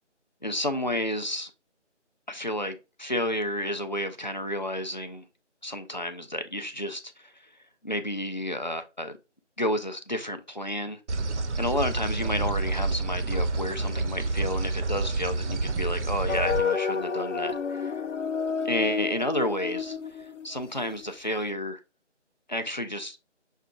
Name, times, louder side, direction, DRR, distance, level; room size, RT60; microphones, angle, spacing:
voice 1, 0.4-1.5 2.3-5.3 5.6-7.6 7.8-9.2 9.6-11.0 11.6-18.0 18.6-21.8 22.5-23.2, left 1 dB, 40° left, 0.5 m, -31 dB
sound 1, 11.1-16.6, right 3 dB, 70° right, 0.6 m, -28 dB
sound 2, 16.3-21.1, left 6 dB, 75° left, 0.7 m, -30 dB
6.3 x 2.3 x 3.6 m
figure-of-eight pair, 175°, 36 cm